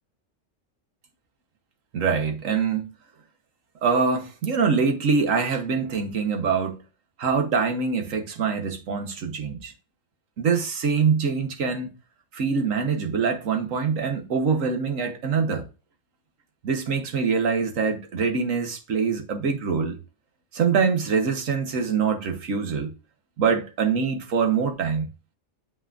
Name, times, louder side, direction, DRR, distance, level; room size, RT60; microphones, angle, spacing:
voice 1, 1.9-2.9 3.8-6.8 7.2-9.7 10.4-11.9 12.3-15.6 16.6-20.0 20.5-22.9 23.4-25.0, right 5 dB, 85° right, 1.5 m, -24 dB
7.2 x 5.7 x 2.5 m
omnidirectional pair, 1.3 m